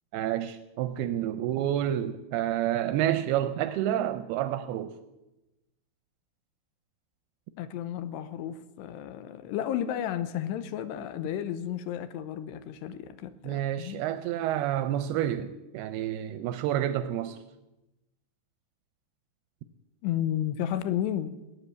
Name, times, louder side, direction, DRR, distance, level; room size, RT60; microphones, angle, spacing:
voice 1, 0.1-5.0 13.4-17.4, right 11 dB, 80° right, 2.3 m, -29 dB
voice 2, 7.6-14.0 20.0-21.4, left 10 dB, 80° left, 2.9 m, -32 dB
18.0 x 10.0 x 8.0 m
omnidirectional pair, 5.0 m